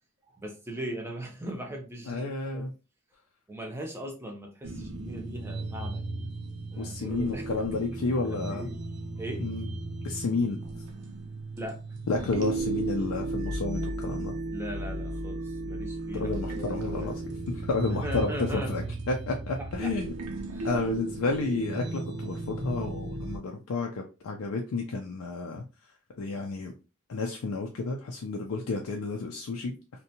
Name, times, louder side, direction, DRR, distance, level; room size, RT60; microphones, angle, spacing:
voice 1, 0.4-2.3 2.5-2.7 3.5-6.0 6.7-8.9 9.2-9.5 9.9-10.2 11.5-11.8 14.5-17.2 17.9-18.9 19.6-20.0 20.5-20.8, right 1 dB, 10° right, 1 dB, 0.5 m, -39 dB
voice 2, 2.1-2.7 6.8-8.7 9.4-9.7 10.0-10.6 12.1-14.3 16.1-17.1 17.5-20.1 20.6-25.6 26.2-26.7 27.1-29.7, left 3 dB, 70° left, 2 dB, 0.4 m, -31 dB
sound 1, 4.6-23.4, right 2 dB, 85° right, 0.6 m, -35 dB
2.6 x 2.2 x 2.7 m, 0.31 s
head